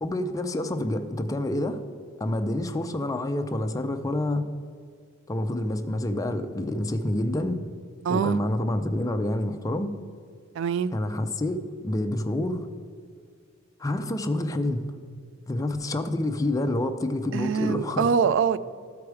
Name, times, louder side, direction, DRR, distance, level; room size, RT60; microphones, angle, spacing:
voice 1, 0.0-1.8 2.2-4.5 5.3-7.6 8.1-9.9 10.9-12.7 13.8-15.0 15.5-18.1, left 1 dB, 15° left, 6 dB, 0.5 m, -28 dB
voice 2, 8.0-8.4 10.5-10.9 17.3-18.6, right 6 dB, 65° right, 15 dB, 0.3 m, -24 dB
13.0 x 4.8 x 4.8 m, 2.1 s
head